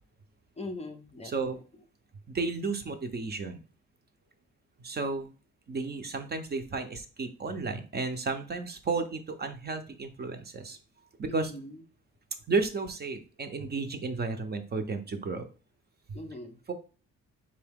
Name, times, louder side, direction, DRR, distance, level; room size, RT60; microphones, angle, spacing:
voice 1, 0.6-1.6 11.3-11.8 16.1-16.6, left 2 dB, 20° left, 6 dB, 0.5 m, -41 dB
voice 2, 1.2-1.6 2.3-3.6 4.8-5.3 5.7-10.8 11.2-11.5 12.5-15.5 16.1-16.2 16.7-16.8, right 3 dB, 35° right, 7 dB, 0.6 m, -33 dB
3.7 x 2.7 x 3.5 m, 0.36 s
cardioid pair, 90°, 30 cm